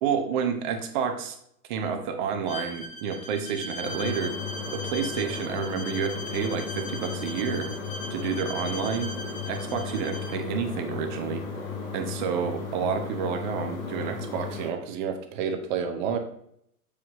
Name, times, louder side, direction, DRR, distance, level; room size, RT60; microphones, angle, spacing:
voice 1, 0.0-1.4 1.7-4.3 4.7-7.7 8.1-9.1 9.5-11.4 11.9-16.2, right 7 dB, 30° right, 5 dB, 0.8 m, -29 dB
Bowed string instrument, 2.5-10.4, left 1 dB, 35° left, 0.9 m, -39 dB
sound 1, 3.8-14.7, left 5 dB, 65° left, 1.7 m, -35 dB
7.2 x 4.9 x 3.0 m, 0.72 s
figure-of-eight pair, 105°, 45 cm